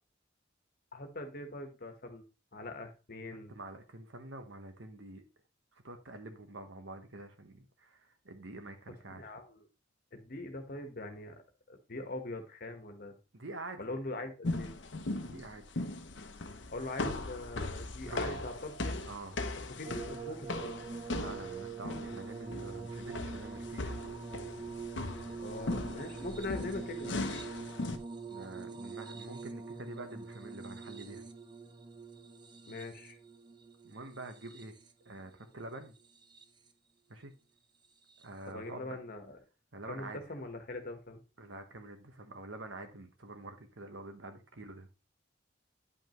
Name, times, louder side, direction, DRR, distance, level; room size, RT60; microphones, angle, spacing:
voice 1, 0.9-2.2 2.5-3.5 9.2-9.6 10.1-11.3 11.7-13.1 13.8-14.7 16.7-19.0 19.7-20.8 25.4-27.4 32.7-33.2 38.5-39.4 39.9-41.2, left 2 dB, 50° left, 1.4 m, -42 dB
voice 2, 3.5-5.2 5.7-9.4 13.3-13.9 15.2-15.8 18.1-18.5 19.1-19.4 21.1-23.9 28.2-31.2 33.8-34.7 35.0-35.9 37.1-37.3 38.2-39.0 39.7-40.2 41.4-44.9, right 2 dB, 75° right, 1.2 m, -46 dB
sound 1, 14.4-28.0, left 2 dB, 65° left, 0.9 m, -39 dB
sound 2, 19.8-35.1 36.0-36.7 38.1-38.2, right 4 dB, 25° right, 0.7 m, -44 dB
9.9 x 5.4 x 3.1 m
head